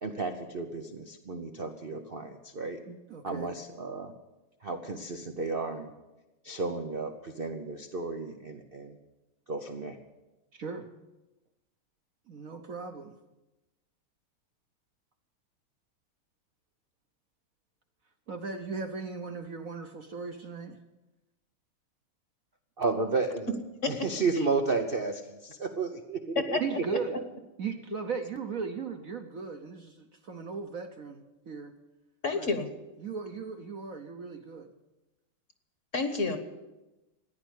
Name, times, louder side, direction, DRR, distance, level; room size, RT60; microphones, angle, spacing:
voice 1, 0.0-2.8 3.2-4.1 4.6-5.9 6.4-9.0 9.5-10.0 22.8-23.6 23.9-27.3, right 4 dB, 80° right, 6 dB, 0.5 m, -33 dB
voice 2, 2.9-3.5 10.5-10.9 12.3-13.1 18.3-20.8 26.6-27.1 27.6-31.7 32.3-32.5 33.0-34.7, right 5 dB, 55° right, 6 dB, 1.0 m, -37 dB
voice 3, 32.2-32.7 35.9-36.4, left 4 dB, 40° left, 8 dB, 1.3 m, -29 dB
15.0 x 10.5 x 8.2 m, 1.0 s
omnidirectional pair, 2.4 m